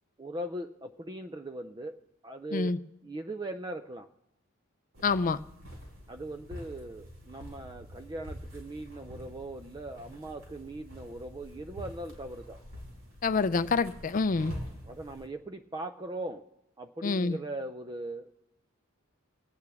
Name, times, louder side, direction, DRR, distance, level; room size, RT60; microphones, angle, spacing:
voice 1, 0.2-2.7 3.0-4.1 6.1-12.6 14.9-16.5 16.8-18.3, right 1 dB, 20° right, 0.4 m, -39 dB
sound 1, 4.9-15.3, equal, 70° right, 3.9 m, -46 dB
voice 2, 5.0-5.4 13.2-14.5 17.0-17.4, left 4 dB, 40° left, 0.4 m, -27 dB
23.0 x 8.7 x 3.5 m
head